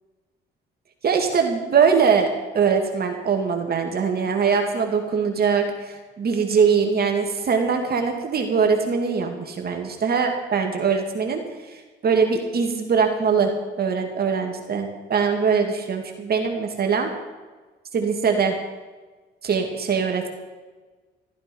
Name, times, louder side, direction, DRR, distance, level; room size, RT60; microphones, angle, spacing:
voice 1, 1.0-11.4 11.7-13.5 13.8-17.1 17.9-18.6 19.4-20.3, right 6 dB, 50° right, 3 dB, 2.3 m, -22 dB
14.0 x 14.0 x 5.4 m, 1.3 s
cardioid pair, 90°, 20 cm